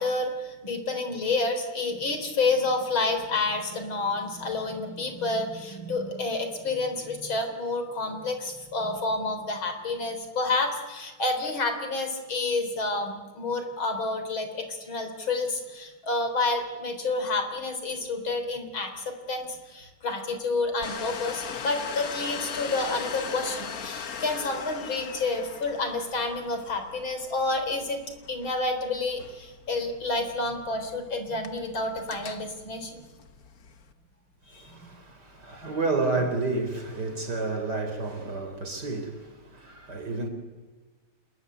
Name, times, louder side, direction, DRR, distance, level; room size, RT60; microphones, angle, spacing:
voice 1, 0.0-28.0 28.3-33.0 34.5-34.8, left 3 dB, 70° left, 7 dB, 4.7 m, -29 dB
Domestic sounds home sounds, 20.8-33.9, left 6 dB, 45° left, 1.6 m, -40 dB
voice 2, 34.5-40.3, right 3 dB, 50° right, 6 dB, 4.8 m, -30 dB
27.5 x 22.5 x 9.7 m, 1.3 s
omnidirectional pair, 2.3 m